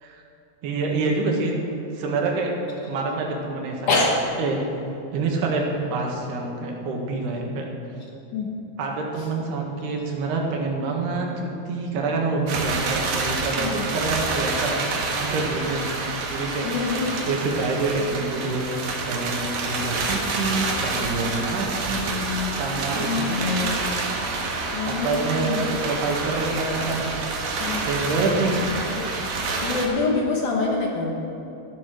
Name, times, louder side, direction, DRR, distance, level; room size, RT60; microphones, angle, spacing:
voice 1, 0.6-1.6 1.9-2.6 2.8-3.9 4.4-4.6 5.1-7.7 8.8-17.0 17.3-23.9 24.9-27.1 27.5-28.5, right 3 dB, 80° right, 0 dB, 3.6 m, -27 dB
sound 1, 12.5-29.9, right 3 dB, 55° right, 2.3 m, -28 dB
voice 2, 16.6-17.3 22.9-23.6 24.7-25.7 27.6-27.9 28.2-29.1 29.4-31.1, left 3 dB, 60° left, -1 dB, 2.3 m, -26 dB
13.5 x 11.5 x 6.3 m, 2.9 s
omnidirectional pair, 4.7 m